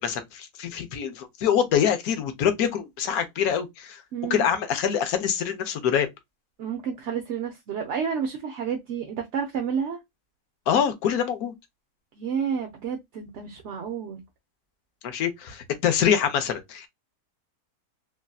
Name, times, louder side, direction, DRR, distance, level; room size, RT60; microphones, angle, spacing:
voice 1, 0.0-4.0 4.3-6.1 10.7-11.5 15.0-16.9, left 8 dB, 70° left, 1.2 m, -25 dB
voice 2, 4.1-4.5 6.6-10.0 12.2-14.2, right 7 dB, 60° right, 0.8 m, -30 dB
3.3 x 2.5 x 2.2 m
omnidirectional pair, 1.7 m